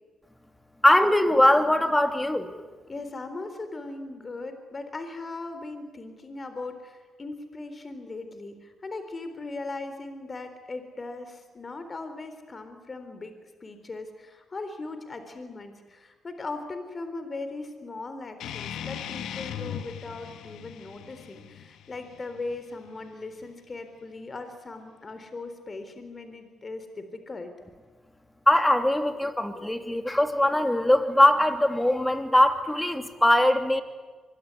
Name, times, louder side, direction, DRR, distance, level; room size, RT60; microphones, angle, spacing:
voice 1, 0.8-2.5 28.5-33.8, left 1 dB, 10° left, 7 dB, 3.1 m, -21 dB
voice 2, 2.9-13.3 13.6-27.5, left 3 dB, 35° left, 8 dB, 3.8 m, -39 dB
sound 1, 18.4-23.4, left 9 dB, 80° left, 1.6 m, -39 dB
24.5 x 22.0 x 9.7 m, 1.3 s
supercardioid pair, 65°, 0 cm